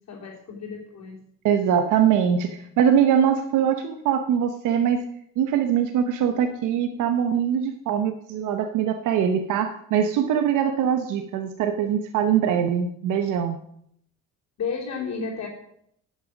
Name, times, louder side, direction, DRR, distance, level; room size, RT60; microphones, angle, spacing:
voice 1, 0.1-1.2 14.6-15.5, left 5 dB, 60° left, -6 dB, 3.1 m, -32 dB
voice 2, 1.4-5.0 5.4-13.6, right 8 dB, 90° right, 7 dB, 0.9 m, -22 dB
10.5 x 6.6 x 6.1 m, 0.70 s
cardioid pair, 90°, 30 cm